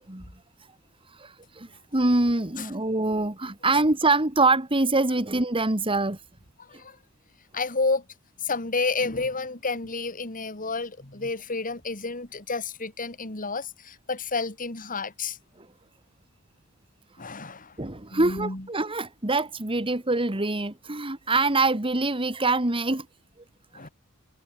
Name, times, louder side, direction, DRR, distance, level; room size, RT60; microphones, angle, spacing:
voice 1, 1.2-6.2 15.6-15.7 17.8-23.1, right 2 dB, 25° right, 2.0 m, -24 dB
voice 2, 6.6-7.0 7.5-8.0 8.4-15.4 17.2-17.8 18.1-18.6 23.7-23.9, left 3 dB, 40° left, 3.8 m, -30 dB
head